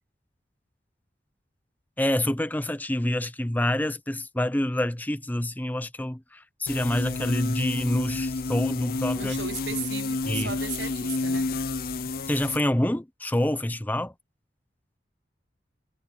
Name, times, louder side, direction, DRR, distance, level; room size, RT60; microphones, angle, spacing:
voice 1, 2.0-9.4 10.3-10.5 12.3-14.1, left 1 dB, 10° left, 0.7 m, -27 dB
sound 1, 6.7-12.6, left 3 dB, 55° left, 0.6 m, -30 dB
voice 2, 9.2-11.5, right 7 dB, 90° right, 1.0 m, -36 dB
head